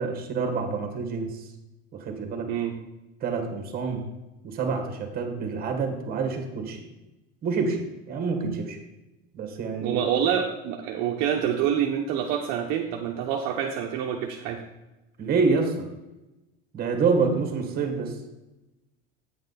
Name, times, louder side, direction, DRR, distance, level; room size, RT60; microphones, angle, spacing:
voice 1, 0.0-1.5 1.9-2.5 3.2-4.0 4.4-6.8 7.4-8.8 9.3-10.0 15.2-15.9 16.7-18.2, right 4 dB, 30° right, 5 dB, 1.7 m, -27 dB
voice 2, 9.8-14.6, right 9 dB, 60° right, 1 dB, 0.9 m, -27 dB
8.8 x 6.6 x 4.1 m, 1.0 s
cardioid pair, 145°, 30 cm